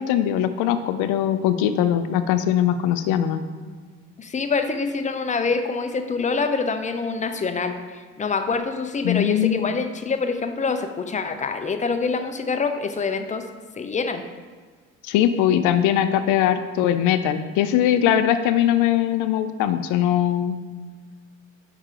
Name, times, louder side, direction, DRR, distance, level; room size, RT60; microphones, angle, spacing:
voice 1, 0.0-3.4 9.0-9.7 15.0-20.6, left 10 dB, 80° left, 11 dB, 0.5 m, -21 dB
voice 2, 4.2-13.4 13.8-14.2, left 4 dB, 25° left, 7 dB, 0.5 m, -25 dB
5.6 x 4.7 x 3.7 m, 1.5 s
supercardioid pair, 85°, 31 cm